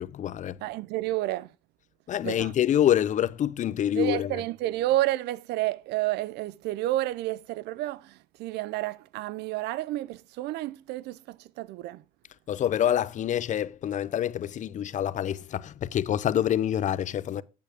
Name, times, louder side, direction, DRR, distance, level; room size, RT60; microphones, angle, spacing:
voice 1, 0.0-0.6 2.1-4.3 12.5-17.4, left 10 dB, 45° left, 0.5 m, -26 dB
voice 2, 0.6-1.5 2.2-2.5 3.9-12.0, right 16 dB, 80° right, 0.5 m, -30 dB
8.6 x 8.0 x 3.4 m
cardioid pair, 110°, 17 cm